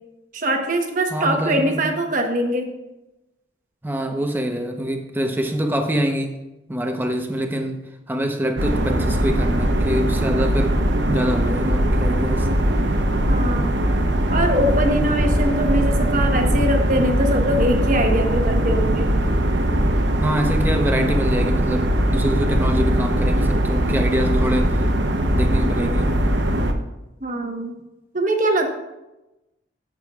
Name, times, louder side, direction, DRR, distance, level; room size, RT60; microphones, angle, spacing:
voice 1, 0.3-2.7 13.3-13.8 14.3-19.2 27.2-27.7 28.1-28.7, right 1 dB, 45° right, 4 dB, 1.2 m, -22 dB
voice 2, 1.1-1.8 3.8-6.4 6.7-10.8 11.1-12.5 20.2-24.8 25.3-26.2, equal, 10° right, 4 dB, 0.9 m, -25 dB
sound 1, 8.6-26.7, right 1 dB, 80° right, 0.9 m, -20 dB
14.0 x 7.5 x 2.4 m, 0.98 s
head